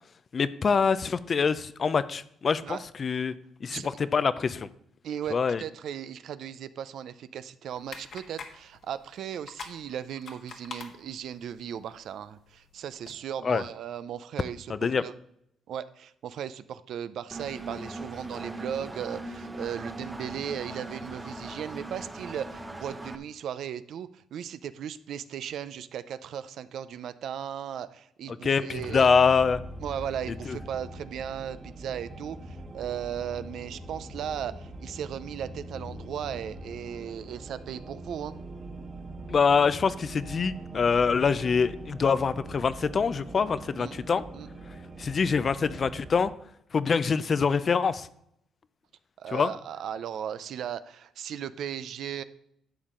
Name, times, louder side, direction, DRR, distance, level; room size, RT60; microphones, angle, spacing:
voice 1, 0.3-3.3 3.6-4.7 5.3-5.6 13.4-13.6 14.7-15.0 28.4-29.6 30.5-30.6 39.3-44.2 45.0-46.3 46.7-48.1 49.3-49.5, left 5 dB, 45° left, 15 dB, 0.5 m, -25 dB
voice 2, 5.0-15.1 15.7-29.1 29.8-38.3 43.8-44.0 44.3-44.5 49.2-52.2, right 9 dB, 70° right, 14 dB, 0.5 m, -37 dB
sound 1, 7.7-13.2, left 5 dB, 65° left, 1.5 m, -47 dB
Engine, 17.3-23.2, right 2 dB, 15° right, 0.8 m, -39 dB
sound 2, 28.7-46.3, right 1 dB, 40° right, 1.6 m, -43 dB
11.5 x 7.1 x 3.8 m, 0.74 s
cardioid pair, 90°, 0 cm